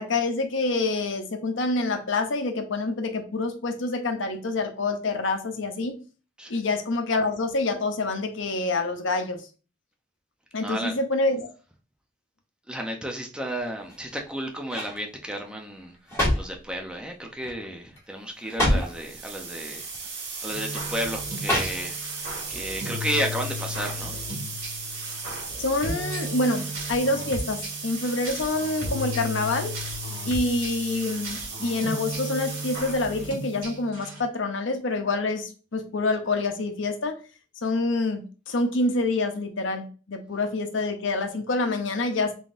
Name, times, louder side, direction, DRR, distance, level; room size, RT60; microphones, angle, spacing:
voice 1, 0.0-6.0 6.5-9.4 10.5-11.5 18.7-18.8 25.6-29.7 30.3-37.2 37.6-42.4, left 2 dB, 70° left, 6 dB, 0.7 m, -27 dB
voice 2, 10.5-10.9 12.7-16.0 16.3-19.9 20.4-22.0 22.5-24.1, equal, 5° right, 2 dB, 0.5 m, -32 dB
sound 1, 13.8-14.2 14.7-15.0 15.8-16.6 17.4-17.7 18.0-18.1 18.4-19.0 19.9-20.1 21.4-22.2 22.6-22.7, left 1 dB, 15° left, 1.7 m, -26 dB
sound 2, 18.7-33.7, right 4 dB, 55° right, 1.0 m, -37 dB
sound 3, 20.5-34.2, left 1 dB, 85° right, 2.0 m, -35 dB
3.7 x 3.6 x 2.5 m, 0.35 s
head